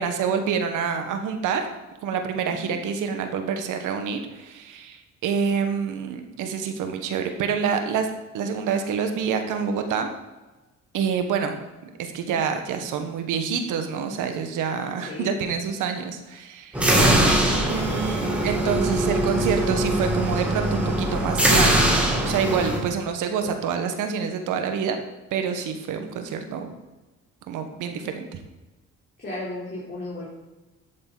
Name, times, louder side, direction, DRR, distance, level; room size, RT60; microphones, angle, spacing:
voice 1, 0.0-1.7 2.0-8.1 8.3-10.1 10.9-11.6 11.8-16.8 17.6-21.9 22.2-25.0 25.3-26.7 27.5-28.3, right 6 dB, 90° right, 6 dB, 1.4 m, -27 dB
voice 2, 16.7-17.7 29.2-30.3, left 1 dB, 35° left, -7 dB, 3.5 m, -34 dB
sound 1, 16.7-22.8, right 1 dB, 5° right, 2.6 m, -22 dB
12.0 x 8.0 x 4.0 m, 1.1 s
cardioid pair, 90°, 30 cm